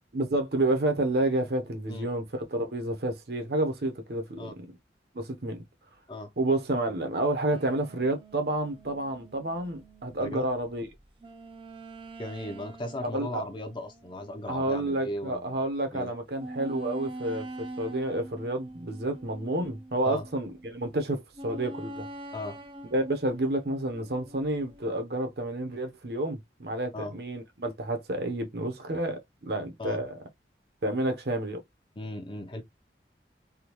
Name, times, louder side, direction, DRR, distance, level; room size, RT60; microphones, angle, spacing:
voice 1, 0.1-4.5 5.1-5.6 6.4-10.9 13.0-13.4 14.5-17.5 17.8-22.1 22.9-30.1 30.8-31.6, right 1 dB, 60° right, 0.8 m, -30 dB
sound 1, 7.5-15.2 15.7-15.8 16.4-20.8 21.3-24.9, right 1 dB, 30° right, 0.5 m, -45 dB
voice 2, 12.2-15.6 15.9-16.1 20.0-20.2 22.3-22.6 26.9-27.1 29.8-30.0 32.0-32.6, left 1 dB, 25° left, 0.6 m, -37 dB
3.5 x 2.3 x 2.9 m
head